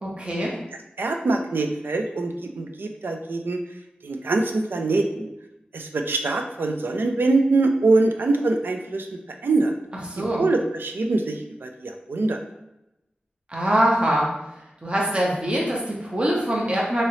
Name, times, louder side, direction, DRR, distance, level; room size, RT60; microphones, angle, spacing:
voice 1, 0.0-0.5 10.1-10.4 13.5-14.3 14.8-17.0, right 1 dB, 30° right, -3 dB, 0.8 m, -23 dB
voice 2, 1.0-3.6 4.0-5.3 5.7-9.7 10.4-12.4, right 3 dB, 90° right, 4 dB, 0.4 m, -23 dB
3.0 x 2.9 x 2.7 m, 0.89 s
wide cardioid pair, 65°, 3 cm